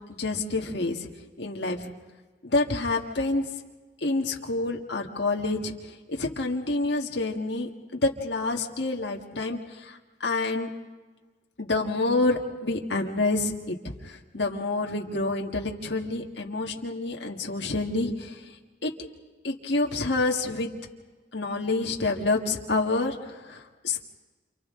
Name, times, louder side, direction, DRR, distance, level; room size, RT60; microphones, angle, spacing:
voice 1, 0.2-1.0 1.4-1.8 2.4-3.5 4.0-5.7 6.1-9.6 9.9-10.7 11.6-13.8 14.0-18.3 18.8-18.9 19.4-20.7 21.3-24.1, left 2 dB, 65° left, 1 dB, 1.7 m, -28 dB
28.5 x 28.5 x 3.8 m, 1.3 s
head